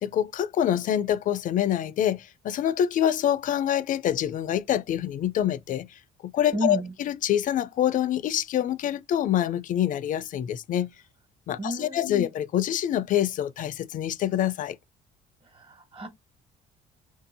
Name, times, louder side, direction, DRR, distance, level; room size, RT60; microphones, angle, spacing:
voice 1, 0.0-5.9 6.2-6.8 7.1-10.9 11.5-14.8, left 10 dB, 50° left, 0.4 m, -26 dB
voice 2, 6.5-6.9 11.6-12.2 15.5-16.1, right 1 dB, 35° right, 1.4 m, -32 dB
4.8 x 2.7 x 2.6 m
cardioid pair, 110°, 17 cm